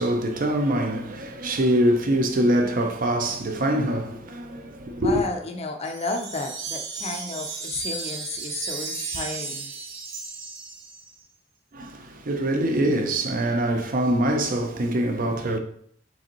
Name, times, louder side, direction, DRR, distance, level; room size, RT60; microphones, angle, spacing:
voice 1, 0.0-5.1 11.7-15.6, right 1 dB, 45° right, 0.6 m, -24 dB
voice 2, 5.0-9.7, left 3 dB, 35° left, 0.5 m, -32 dB
Wind chime, 5.8-11.2, right 4 dB, 75° right, 0.9 m, -34 dB
4.9 x 3.5 x 3.0 m
head